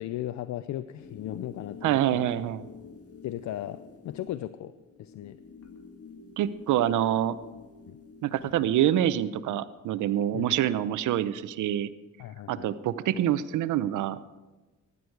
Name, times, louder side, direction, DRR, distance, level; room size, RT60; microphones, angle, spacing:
voice 1, 0.0-2.3 3.2-4.7 5.0-5.4 7.9-8.0 10.3-10.6 12.2-12.7, left 13 dB, 70° left, 13 dB, 0.5 m, -36 dB
sound 1, 1.0-8.8, left 5 dB, 50° left, 1.7 m, -48 dB
voice 2, 1.8-2.6 6.4-7.4 8.2-11.9 12.5-14.2, right 11 dB, 80° right, 15 dB, 0.7 m, -26 dB
16.0 x 11.0 x 4.7 m, 1.2 s
cardioid pair, 90°, 30 cm